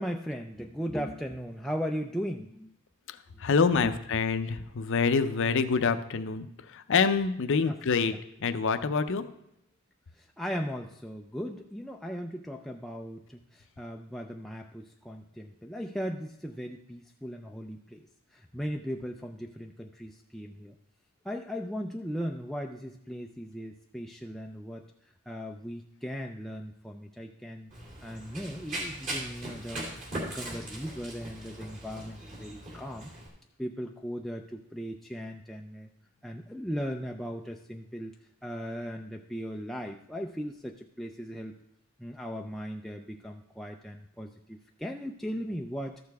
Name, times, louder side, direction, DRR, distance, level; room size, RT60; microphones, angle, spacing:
voice 1, 0.0-2.7 3.8-4.0 7.6-7.8 8.0-8.2 10.2-18.1 18.3-20.7 21.2-24.8 25.3-27.7 28.0-29.9 30.2-33.1 33.6-35.9 36.2-38.1 38.4-41.5 42.0-46.0, equal, ahead, 1 dB, 0.3 m, -37 dB
voice 2, 3.4-8.1 8.4-9.2, left 5 dB, 60° left, 10 dB, 0.6 m, -26 dB
Run, 27.7-33.3, right 1 dB, 40° right, 2.6 m, -39 dB
13.0 x 6.7 x 3.5 m, 0.78 s
head